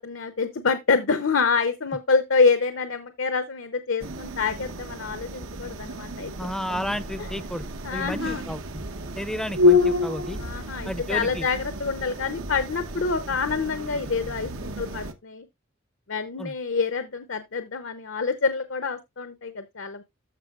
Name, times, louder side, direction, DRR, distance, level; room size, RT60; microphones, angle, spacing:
voice 1, 0.0-6.3 7.2-7.3 7.8-8.5 9.6-9.9 10.4-15.5 16.1-20.0, left 4 dB, 65° left, 0.8 m, -26 dB
sound 1, 4.0-15.1, left 3 dB, 80° right, 1.0 m, -29 dB
voice 2, 6.4-7.6 7.9-8.8 9.2-10.4 10.9-11.4 16.4-16.5, equal, ahead, 0.5 m, -32 dB
13.5 x 5.3 x 2.4 m
head